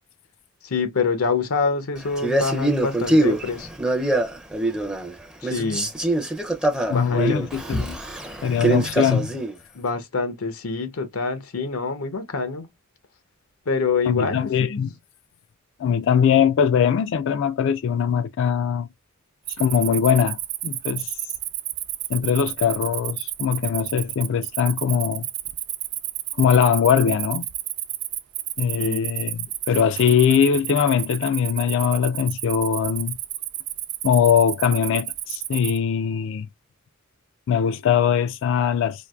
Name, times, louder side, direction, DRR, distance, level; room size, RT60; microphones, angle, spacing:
voice 1, 0.6-3.7 5.4-5.9 6.9-7.4 9.7-12.7 13.7-14.8 28.8-29.1, left 4 dB, 90° left, 0.8 m, -26 dB
Male speech man speaking, 2.2-5.1 5.4-9.5, right 1 dB, 5° right, 0.4 m, -24 dB
voice 2, 6.9-8.0 8.4-9.4 14.1-14.9 15.8-18.9 19.6-21.1 22.1-25.3 26.4-27.5 28.6-33.2 34.0-36.5 37.5-39.1, left 7 dB, 60° left, 0.3 m, -21 dB
Cricket, 19.4-35.8, right 14 dB, 60° right, 0.5 m, -31 dB
4.5 x 2.5 x 2.3 m
head